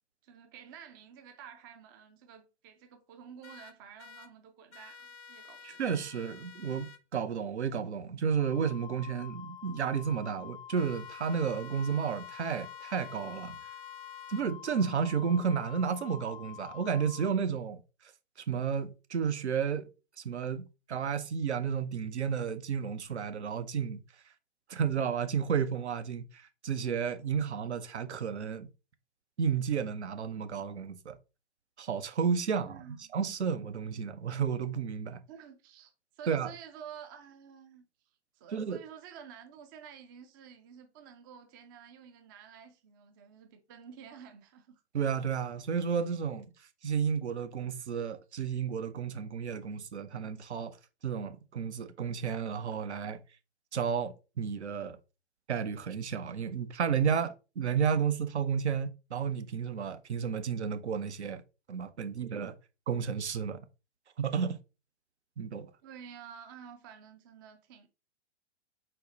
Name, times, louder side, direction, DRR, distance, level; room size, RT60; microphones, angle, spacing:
voice 1, 0.2-5.8 32.7-33.1 35.3-37.9 38.3-44.8 65.8-67.9, right 8 dB, 20° right, 0.4 m, -50 dB
sound 1, 3.4-4.3 4.7-7.0 10.8-14.4, left 5 dB, 90° left, 0.6 m, -52 dB
voice 2, 5.6-13.6 14.3-17.8 18.5-19.9 20.2-24.0 24.7-28.7 29.4-31.2 31.8-35.2 36.3-36.5 38.5-38.8 44.9-46.5 46.8-50.8 51.0-53.2 53.7-55.0 55.5-61.4 61.7-62.5 62.9-63.6 64.2-64.6 65.4-65.7, right 7 dB, 75° right, 0.6 m, -32 dB
Wind instrument woodwind instrument, 8.4-17.4, left 11 dB, 50° left, 0.4 m, -47 dB
4.3 x 2.0 x 3.9 m
figure-of-eight pair, 115°, 34 cm